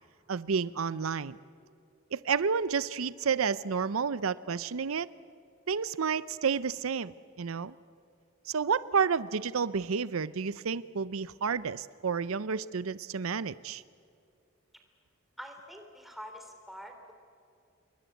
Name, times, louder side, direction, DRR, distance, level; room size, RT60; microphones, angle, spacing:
voice 1, 0.3-1.4 2.1-5.1 5.7-7.7 8.5-13.8, right 6 dB, 85° right, 17 dB, 0.6 m, -30 dB
voice 2, 15.4-17.1, equal, ahead, 4 dB, 3.5 m, -45 dB
27.5 x 22.5 x 8.2 m, 2.6 s
head